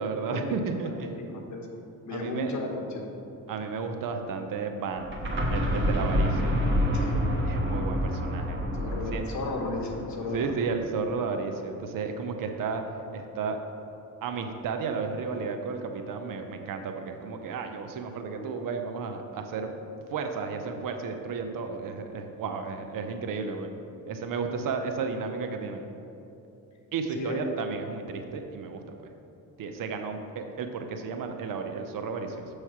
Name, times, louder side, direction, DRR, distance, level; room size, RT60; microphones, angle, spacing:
voice 1, 0.0-1.1 2.1-2.5 3.5-5.1 5.5-6.6 7.4-8.6 9.1-9.2 10.2-12.8 13.1-13.6 14.2-19.7 20.1-23.7 24.1-25.9 26.9-29.1 29.6-32.5, right 5 dB, 65° right, 5 dB, 0.6 m, -33 dB
voice 2, 1.3-1.7 2.1-3.1 6.7-7.1 8.5-10.6 27.1-27.4, left 2 dB, 50° left, 1 dB, 1.1 m, -35 dB
sound 1, 5.0-10.7, equal, 35° right, 1.2 m, -28 dB
7.1 x 3.2 x 5.8 m, 2.9 s
cardioid pair, 95°, 36 cm